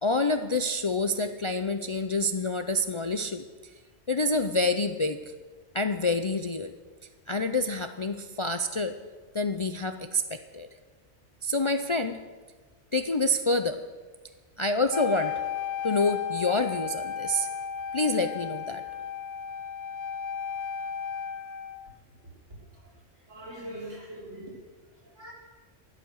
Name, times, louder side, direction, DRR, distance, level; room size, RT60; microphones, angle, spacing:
voice 1, 0.0-3.7 4.1-5.2 5.7-6.7 7.3-9.0 9.3-10.7 11.4-12.2 12.9-13.8 14.6-15.4 15.8-17.5 17.9-18.8, left 2 dB, 45° left, 8 dB, 0.4 m, -27 dB
Wind instrument woodwind instrument, 14.9-21.9, left 7 dB, 70° left, 1.1 m, -34 dB
voice 2, 23.3-24.6 25.0-25.3, right 1 dB, 80° right, -4 dB, 4.2 m, -41 dB
14.0 x 12.0 x 6.4 m, 1.4 s
omnidirectional pair, 1.2 m